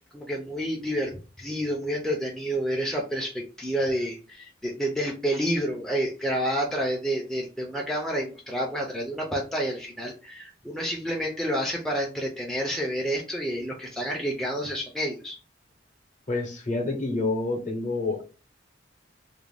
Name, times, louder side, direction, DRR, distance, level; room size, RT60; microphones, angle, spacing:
voice 1, 0.1-15.4, equal, ahead, -1 dB, 0.3 m, -29 dB
voice 2, 16.3-18.2, left 2 dB, 45° left, 3 dB, 0.7 m, -28 dB
2.4 x 2.1 x 3.2 m, 0.34 s
head